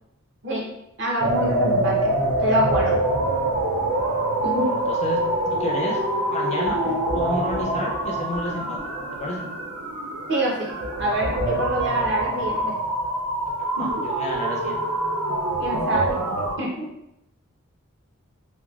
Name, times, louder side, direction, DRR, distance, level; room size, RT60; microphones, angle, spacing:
voice 1, 1.0-2.1 2.4-3.0 4.4-4.7 6.8-6.9 10.3-12.8 13.8-13.9 15.6-16.2 16.6-16.9, right 1 dB, 55° right, -3 dB, 0.7 m, -26 dB
sound 1, 1.2-16.6, right 1 dB, 90° right, 0.4 m, -25 dB
voice 2, 4.6-5.2 5.5-6.0 6.3-6.8 7.1-8.8 9.1-9.5 13.6-14.8, left 1 dB, 30° left, -1 dB, 0.4 m, -31 dB
3.0 x 2.2 x 2.3 m, 0.82 s
head